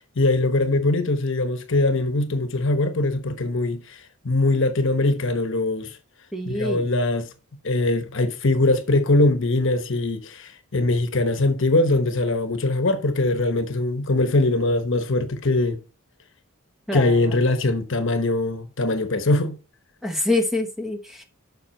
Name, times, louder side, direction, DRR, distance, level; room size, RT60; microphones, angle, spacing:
voice 1, 0.2-4.0 4.2-5.9 6.5-7.3 7.6-15.8 16.9-19.6, left 2 dB, 60° left, 1.0 m, -22 dB
voice 2, 6.3-6.9 16.9-17.3 20.0-21.2, left 2 dB, ahead, 1.0 m, -26 dB
7.5 x 5.8 x 4.3 m
head